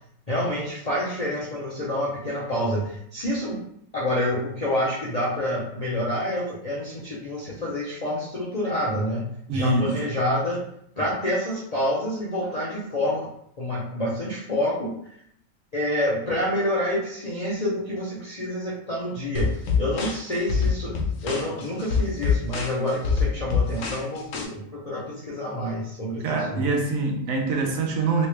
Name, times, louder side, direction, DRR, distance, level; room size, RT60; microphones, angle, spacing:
voice 1, 0.3-3.6 3.9-10.7 11.0-13.3 13.6-14.9 15.7-21.0 21.2-26.7, left 1 dB, 45° left, -7 dB, 0.5 m, -28 dB
voice 2, 9.5-10.0 26.2-28.3, right 4 dB, 70° right, 1 dB, 1.1 m, -24 dB
sound 1, 19.3-24.4, left 5 dB, 65° left, 1.1 m, -25 dB
3.2 x 2.9 x 3.2 m, 0.70 s
omnidirectional pair, 1.6 m